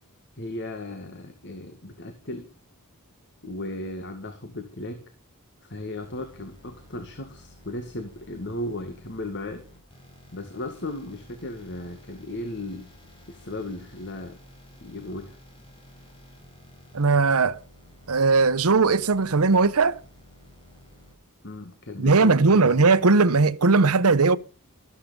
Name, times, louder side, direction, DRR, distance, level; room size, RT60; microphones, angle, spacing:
voice 1, 0.4-2.5 3.4-5.0 5.6-9.6 10.3-12.9 13.3-14.4 14.8-15.4 21.4-22.9, left 1 dB, 55° left, 2.1 m, -36 dB
sound 1, 6.0-21.1, left 1 dB, 25° left, 7.1 m, -52 dB
voice 2, 16.9-17.6 18.1-20.0 22.0-24.4, right 4 dB, 80° right, 0.9 m, -19 dB
13.0 x 13.0 x 5.4 m
head